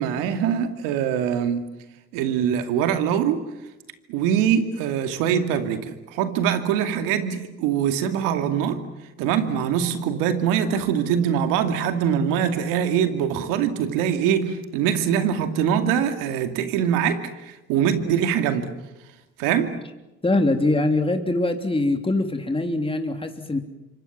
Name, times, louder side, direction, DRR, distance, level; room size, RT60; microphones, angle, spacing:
voice 1, 0.0-1.7 2.1-3.4 4.1-8.8 9.2-18.7 19.4-19.7, right 8 dB, 85° right, 8 dB, 2.5 m, -23 dB
voice 2, 20.2-23.6, left 2 dB, 15° left, 5 dB, 3.3 m, -23 dB
28.0 x 24.5 x 7.4 m, 1.0 s
supercardioid pair, 60°, 32 cm